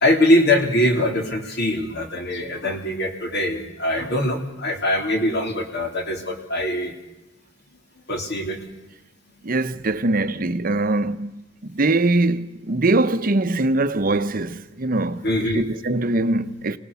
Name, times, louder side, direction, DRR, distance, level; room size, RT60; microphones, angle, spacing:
voice 1, 0.0-6.9 8.1-8.6 15.2-15.6, left 1 dB, 60° left, 3.3 m, -22 dB
voice 2, 9.4-16.8, right 2 dB, 45° right, 0.8 m, -22 dB
26.0 x 18.5 x 7.0 m
head